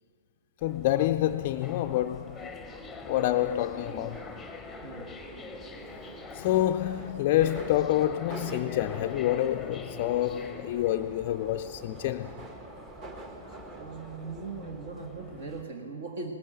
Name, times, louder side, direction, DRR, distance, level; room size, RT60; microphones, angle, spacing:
voice 1, 0.6-2.6 3.0-4.4 6.3-12.4, left 13 dB, 45° left, 0.3 m, -27 dB
sound 1, 0.6-15.6, left 4 dB, 5° left, 0.8 m, -45 dB
Subway metro underground, 1.2-15.5, right 2 dB, 25° right, 1.1 m, -47 dB
voice 2, 4.8-5.1 13.7-16.3, right 4 dB, 60° right, 1.6 m, -39 dB
18.5 x 9.8 x 7.4 m
hypercardioid pair, 140°, 0 cm